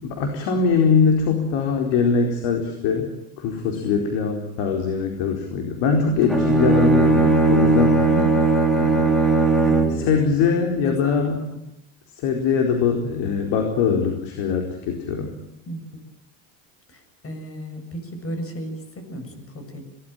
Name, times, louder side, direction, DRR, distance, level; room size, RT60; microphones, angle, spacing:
voice 1, 0.0-3.1 3.4-8.1 8.7-9.1 9.9-11.4 12.2-15.3, left 5 dB, 65° left, 3 dB, 4.5 m, -22 dB
Bowed string instrument, 6.2-10.1, right 3 dB, ahead, 4.3 m, -18 dB
voice 2, 9.6-11.4 15.7-15.8 16.9-19.8, equal, 30° left, 7 dB, 7.2 m, -34 dB
24.0 x 19.0 x 9.0 m, 0.84 s
supercardioid pair, 100°, 46 cm